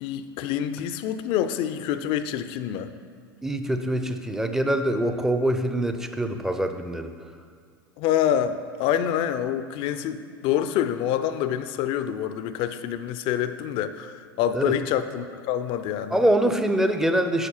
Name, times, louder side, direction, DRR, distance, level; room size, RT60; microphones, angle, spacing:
voice 1, 0.0-2.9 8.0-16.2, left 10 dB, 45° left, 11 dB, 0.5 m, -26 dB
voice 2, 3.4-7.1 14.5-14.7 16.1-17.5, right 1 dB, 5° right, 7 dB, 0.6 m, -24 dB
9.9 x 6.4 x 4.5 m, 2.1 s
figure-of-eight pair, 85°, 13 cm